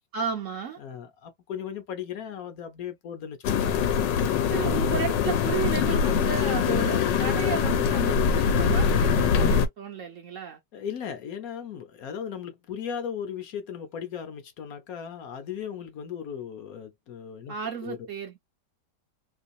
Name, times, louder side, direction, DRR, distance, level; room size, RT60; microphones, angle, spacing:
voice 1, 0.1-0.8 4.5-10.6 17.5-18.4, right 7 dB, 60° right, 0.8 m, -33 dB
voice 2, 0.8-4.0 4.5-4.9 10.7-17.5 17.8-18.0, left 8 dB, 60° left, 1.1 m, -37 dB
sound 1, 3.4-9.7, left 6 dB, 85° left, 1.3 m, -23 dB
3.1 x 2.8 x 2.6 m
omnidirectional pair, 1.9 m